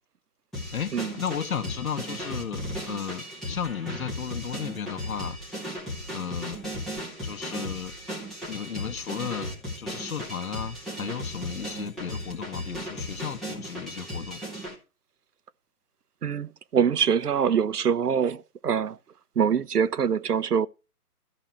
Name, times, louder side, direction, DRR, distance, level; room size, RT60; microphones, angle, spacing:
sound 1, 0.5-14.7, equal, ahead, 0.6 m, -36 dB
voice 1, 0.7-5.4 6.1-6.6 7.2-7.9 8.5-9.5 9.8-14.4, left 7 dB, 60° left, 1.7 m, -34 dB
voice 2, 16.2-19.0 19.4-20.7, right 7 dB, 75° right, 0.9 m, -24 dB
14.0 x 6.3 x 5.9 m
figure-of-eight pair, 140°, 47 cm